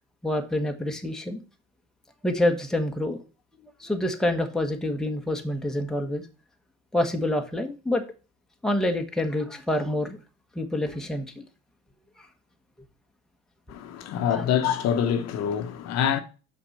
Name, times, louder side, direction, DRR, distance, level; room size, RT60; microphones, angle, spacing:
voice 1, 0.2-1.4 2.2-3.2 3.8-6.2 6.9-8.0 8.6-10.2 10.5-11.4 14.3-14.4, left 1 dB, ahead, 1.2 m, -27 dB
voice 2, 13.7-16.2, left 8 dB, 55° left, 1.0 m, -25 dB
5.9 x 4.5 x 6.5 m
supercardioid pair, 100°, 32 cm